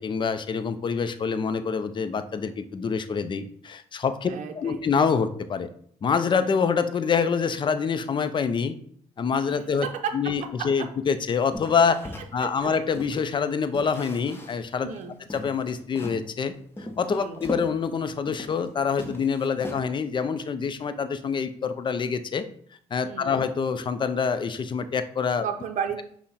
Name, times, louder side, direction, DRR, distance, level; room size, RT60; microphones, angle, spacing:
voice 1, 0.0-4.3 4.6-5.7 6.0-8.8 9.2-9.9 10.1-12.0 12.3-14.9 15.3-16.5 16.8-22.5 22.9-25.5, left 6 dB, 35° left, 11 dB, 0.4 m, -26 dB
voice 2, 4.2-4.8 9.8-10.1 10.6-10.9 12.4-12.5 14.8-15.2 17.1-17.4 23.0-23.4 25.4-26.0, right 7 dB, 75° right, 6 dB, 0.5 m, -32 dB
sound 1, 11.5-13.3 13.7-14.7 15.0-15.1 15.3-16.3 16.8-18.7 18.9-20.1, left 1 dB, 15° left, 0.8 m, -38 dB
5.7 x 2.1 x 4.2 m, 0.62 s
cardioid pair, 75°, 13 cm